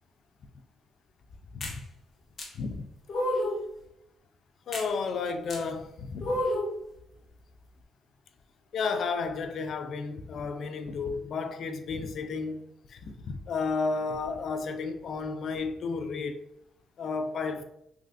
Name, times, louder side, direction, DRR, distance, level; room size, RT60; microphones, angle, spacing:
sound 1, 1.6-1.8 2.4-2.5 3.1-3.6 4.7-4.9 5.5-5.6 6.2-6.8, left 1 dB, 45° left, 0.8 m, -30 dB
voice 1, 4.7-6.4 8.7-12.6 12.9-16.4 17.0-17.6, left 4 dB, 60° left, 0.3 m, -32 dB
3.3 x 2.5 x 2.4 m
cardioid pair, 90°, 0 cm